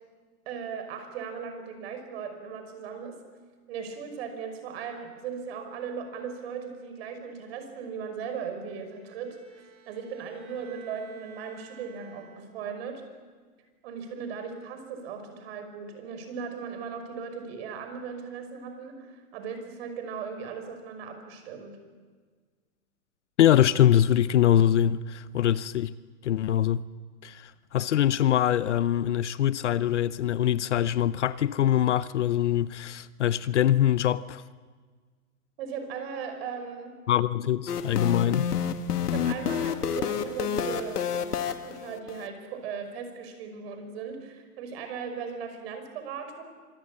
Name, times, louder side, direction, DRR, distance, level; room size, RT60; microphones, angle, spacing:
voice 1, 0.5-3.2 3.7-13.0 13.8-21.8 35.6-37.0 39.1-41.1 41.4-46.4, right 6 dB, 40° right, 5.7 m, -38 dB
Bowed string instrument, 8.6-12.8, right 5 dB, 65° right, 6.0 m, -52 dB
voice 2, 23.4-25.9 26.2-26.8 27.2-34.4 37.1-38.5, left 11 dB, 50° left, 0.7 m, -23 dB
sound 1, 37.7-42.3, left 8 dB, 80° left, 2.1 m, -29 dB
25.5 x 24.0 x 8.6 m
hypercardioid pair, 160°, 46 cm